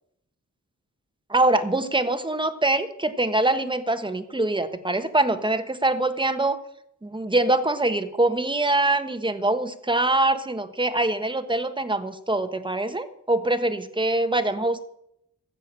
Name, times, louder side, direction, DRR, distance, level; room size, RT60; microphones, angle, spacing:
voice 1, 1.3-6.6 7.0-14.8, right 2 dB, 15° right, 9 dB, 1.3 m, -24 dB
15.0 x 7.0 x 8.9 m, 0.75 s
wide cardioid pair, 75°, 30 cm